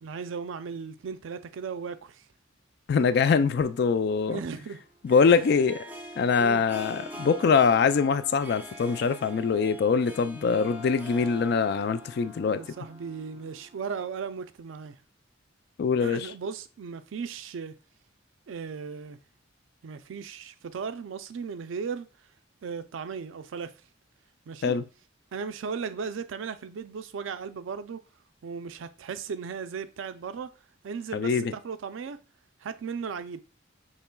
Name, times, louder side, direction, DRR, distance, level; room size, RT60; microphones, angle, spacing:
voice 1, 0.0-2.2 4.3-4.8 6.4-6.6 12.5-15.0 16.0-17.8 18.5-19.2 19.8-22.1 22.6-23.7 24.5-24.7 25.3-28.0 28.4-30.5 30.8-32.2 32.6-33.4, right 6 dB, 85° right, 0.4 m, -36 dB
voice 2, 2.9-4.4 5.0-5.8 6.2-12.6 15.8-16.3 24.6-24.8 31.1-31.5, left 5 dB, 55° left, 0.3 m, -23 dB
Harp, 3.7-14.1, equal, 10° right, 0.4 m, -44 dB
5.7 x 3.0 x 2.2 m
head